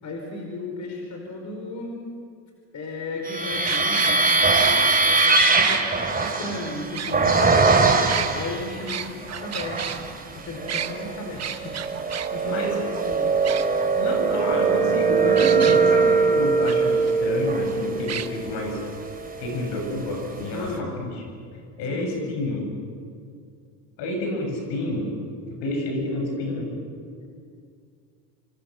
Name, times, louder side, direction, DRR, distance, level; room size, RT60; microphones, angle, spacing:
voice 1, 0.0-2.0 2.7-5.8 6.2-10.0 10.3-11.7 12.3-12.6 12.9-13.4 20.5-20.9 21.9-22.4 27.2-27.3, left 2 dB, 40° left, 1 dB, 4.9 m, -35 dB
sound 1, 3.2-8.7 9.3-10.1 10.6-19.8, right 4 dB, 20° right, 3.1 m, -22 dB
sound 2, 3.5-5.8 6.2-6.3 6.9-7.6 8.0-10.0 10.7-10.9 11.4-12.3 12.6-12.7 13.0-13.1 13.4-14.1 15.4-15.8 16.7-16.8 17.1-17.2 18.1-18.3, right 9 dB, 35° right, 1.4 m, -31 dB
voice 2, 12.4-12.9 13.9-18.8 19.4-20.7 21.0-21.1 21.8-22.6 24.0-25.1 25.6-26.7, left 1 dB, 70° left, 2 dB, 8.0 m, -29 dB
27.0 x 25.0 x 6.6 m, 2.2 s
supercardioid pair, 95°, 43 cm